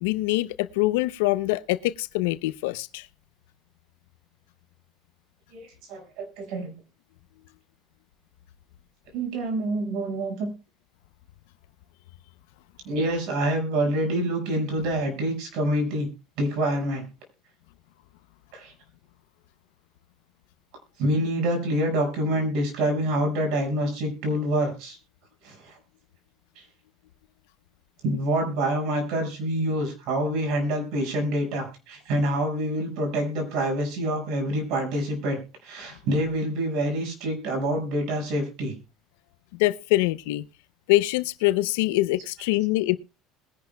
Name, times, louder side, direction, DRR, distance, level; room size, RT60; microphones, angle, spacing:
voice 1, 0.0-3.1 39.6-40.5 40.9-43.0, left 18 dB, 85° left, 0.6 m, -24 dB
voice 2, 5.5-6.7 9.1-10.5 12.9-16.1 16.4-17.1 18.5-18.7 21.0-25.0 25.4-25.7 26.6-26.7 28.0-38.7, right 1 dB, 70° right, 5.3 m, -26 dB
21.0 x 10.5 x 2.3 m
supercardioid pair, 110°, 0 cm